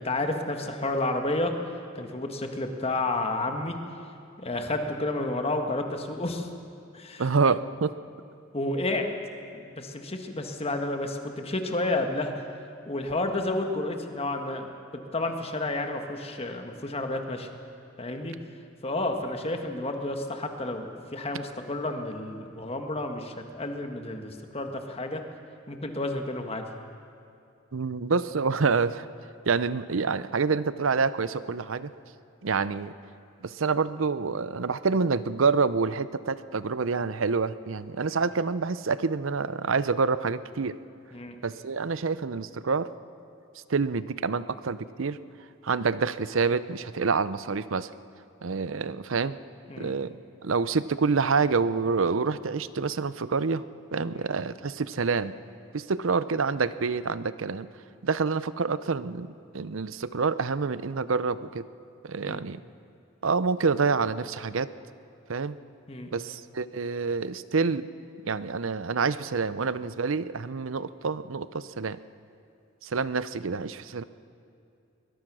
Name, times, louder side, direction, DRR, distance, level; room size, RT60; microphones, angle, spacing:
voice 1, 0.0-1.5 1.9-3.8 4.4-6.5 6.9-7.3 8.5-9.1 9.5-12.4 12.9-14.7 15.1-17.5 18.0-18.3 18.8-25.2 25.7-26.7 41.1-41.3 49.7-49.9 54.1-54.3 62.2-62.5 65.9-66.1, left 2 dB, 30° left, 5 dB, 1.5 m, -31 dB
voice 2, 7.2-7.9 27.7-29.1 29.5-31.9 32.4-32.9 33.4-40.8 41.4-42.9 43.7-45.2 45.6-47.9 48.4-49.4 49.8-53.6 53.9-55.3 55.7-57.7 58.0-61.7 62.0-62.6 63.2-64.7 65.3-65.6 66.1-67.9 68.2-72.0 72.8-74.0, right 4 dB, 70° right, 15 dB, 0.6 m, -27 dB
22.0 x 21.0 x 6.2 m, 2.6 s
head